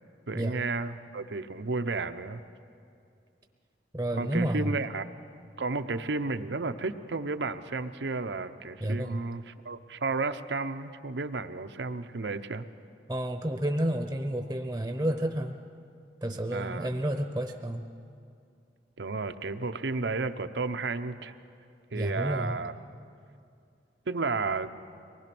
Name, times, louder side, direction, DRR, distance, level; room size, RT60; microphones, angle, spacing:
voice 1, 0.3-2.4 4.1-5.0 5.6-12.6 16.5-16.9 19.0-21.3 21.9-22.7 24.1-24.7, right 3 dB, 90° right, 8 dB, 0.8 m, -32 dB
voice 2, 3.9-4.8 8.8-9.2 13.1-15.6 16.2-17.9 21.9-22.6, right 1 dB, 15° right, 5 dB, 0.8 m, -30 dB
23.5 x 19.5 x 6.1 m, 2.4 s
head